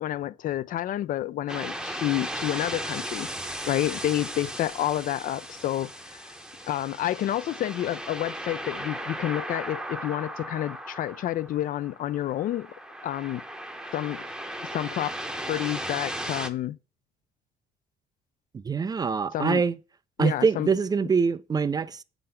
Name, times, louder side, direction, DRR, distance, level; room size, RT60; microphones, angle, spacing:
voice 1, 0.0-3.3 3.7-6.3 6.6-12.7 13.0-13.4 13.9-14.3 14.7-15.1 15.4-16.8 19.3-19.6 20.2-20.7, left 13 dB, 55° left, 0.4 m, -29 dB
sound 1, 1.5-16.5, right 1 dB, 5° right, 0.7 m, -36 dB
voice 2, 18.5-19.8 20.2-22.0, right 5 dB, 25° right, 0.3 m, -24 dB
7.6 x 3.9 x 5.5 m
cardioid pair, 110°, 17 cm